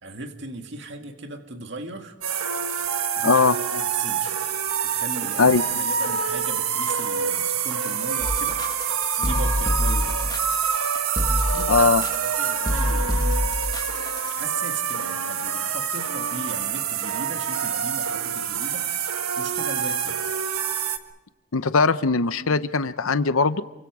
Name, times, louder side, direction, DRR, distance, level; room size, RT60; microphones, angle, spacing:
voice 1, 0.0-2.1 3.1-3.5 3.7-4.4 4.8-10.4 11.5-12.0 12.3-13.3 14.3-20.2, right 3 dB, 55° right, 5 dB, 2.1 m, -37 dB
sound 1, 2.2-21.0, right 7 dB, 85° right, 1.5 m, -26 dB
voice 2, 3.2-3.6 5.4-5.6 11.7-12.0 21.5-23.6, left 4 dB, 75° left, 12 dB, 0.8 m, -20 dB
sound 2, 8.2-14.3, left 1 dB, 20° left, 1.1 m, -27 dB
29.0 x 24.0 x 4.9 m, 1.0 s
head